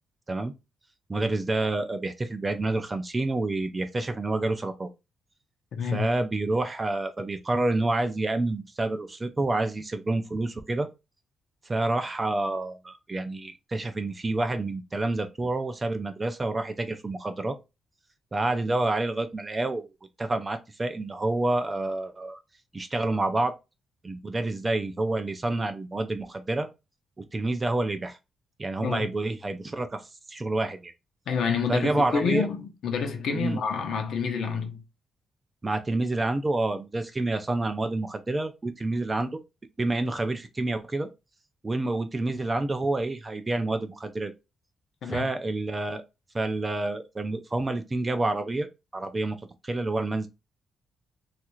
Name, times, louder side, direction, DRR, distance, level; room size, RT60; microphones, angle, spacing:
voice 1, 1.1-4.9 5.8-10.9 11.6-17.6 18.3-19.9 20.2-22.4 22.7-23.5 24.0-26.7 27.2-28.2 28.6-30.0 30.3-30.9 31.7-32.5 33.3-33.6 35.6-39.4 39.8-41.1 41.6-44.3 45.0-46.0 46.3-48.7 48.9-49.4 49.6-50.3, right 2 dB, 20° right, 0.3 m, -28 dB
voice 2, 5.7-6.1 28.8-29.1 31.3-34.8 45.0-45.3, left 6 dB, 60° left, 0.6 m, -28 dB
3.1 x 2.4 x 2.9 m
wide cardioid pair, 165°, 0 cm